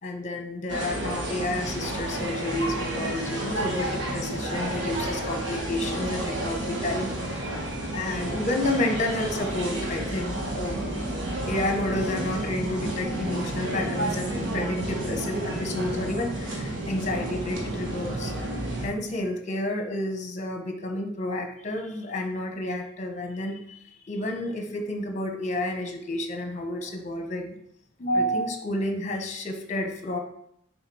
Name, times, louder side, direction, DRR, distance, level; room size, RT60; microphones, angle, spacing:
voice 1, 0.0-7.1 7.9-10.8 11.5-18.3 18.8-27.5 28.0-30.2, left 1 dB, 35° left, 4 dB, 1.0 m, -30 dB
sound 1, 0.7-18.9, right 1 dB, 65° right, 1.5 m, -31 dB
6.5 x 3.9 x 4.8 m, 0.73 s
head